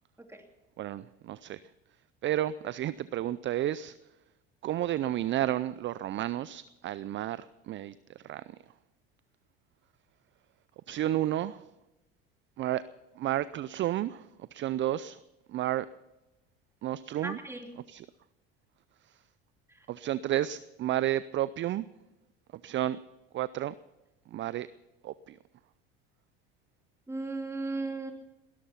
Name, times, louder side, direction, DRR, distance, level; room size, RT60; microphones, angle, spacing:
voice 1, 0.8-1.6 2.2-3.9 4.6-8.6 10.9-11.7 12.6-12.8 13.2-15.2 15.5-15.9 16.8-17.4 17.9-18.0 19.9-21.9 22.5-23.0 23.3-23.7 24.3-24.7 25.0-25.4, right 13 dB, 40° right, 17 dB, 0.5 m, -31 dB
voice 2, 17.2-17.7 19.7-19.9 27.1-28.1, right 3 dB, 10° right, 4 dB, 2.7 m, -36 dB
19.5 x 12.5 x 5.7 m, 0.99 s
hypercardioid pair, 80°, 30 cm